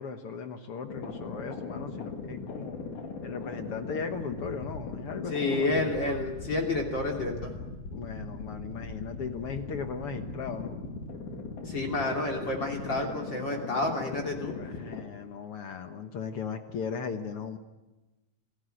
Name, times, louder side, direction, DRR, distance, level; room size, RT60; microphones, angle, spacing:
voice 1, 0.0-2.8 3.2-6.2 7.9-10.8 14.4-17.6, left 6 dB, 60° left, 7 dB, 1.8 m, -37 dB
sound 1, 0.9-15.0, left 3 dB, 80° left, 3.9 m, -39 dB
voice 2, 5.3-7.5 11.6-14.5, left 2 dB, 35° left, 0 dB, 3.3 m, -30 dB
26.5 x 17.0 x 7.8 m, 1.1 s
omnidirectional pair, 3.5 m